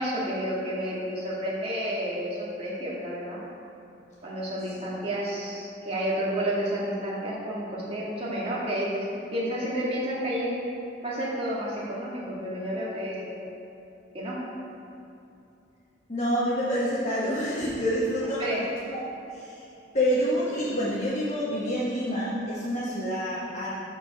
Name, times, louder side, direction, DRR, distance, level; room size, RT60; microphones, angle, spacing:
voice 1, 0.0-3.4 4.2-9.1 9.3-10.5 11.0-13.3 14.1-14.4 18.4-18.6, equal, 30° right, -7 dB, 1.9 m, -30 dB
voice 2, 16.1-18.4 18.9-19.0 19.3-19.6 19.9-23.7, equal, 35° left, -9 dB, 1.3 m, -27 dB
13.0 x 4.6 x 4.1 m, 2.7 s
head